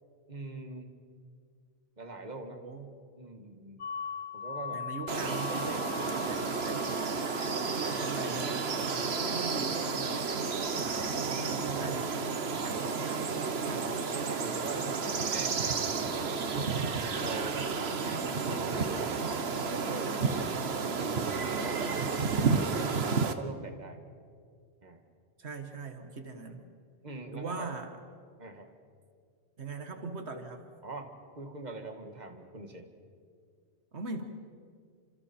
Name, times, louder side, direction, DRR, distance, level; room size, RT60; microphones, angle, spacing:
voice 1, 0.3-0.9 2.0-2.6 3.2-3.9 4.3-4.8 7.8-9.0 13.0-13.3 14.3-16.9 17.2-17.6 18.0-19.2 19.5-20.2 20.9-22.7 23.2-24.0 24.8-25.0 27.0-27.7 28.4-28.7 30.8-31.1 31.4-32.9, right 3 dB, 40° right, 4 dB, 2.0 m, -43 dB
voice 2, 2.4-3.0 4.7-7.1 7.7-10.2 10.8-12.1 12.6-13.1 13.6-14.1 25.4-26.6 27.3-27.9 29.6-30.7 33.9-34.2, right 3 dB, 85° right, 6 dB, 1.9 m, -41 dB
sound 1, 3.8-15.5, left 7 dB, 80° left, 1.3 m, -44 dB
sound 2, 5.1-23.3, right 5 dB, 70° right, 1.4 m, -31 dB
29.5 x 26.5 x 4.5 m, 2.1 s
omnidirectional pair, 1.1 m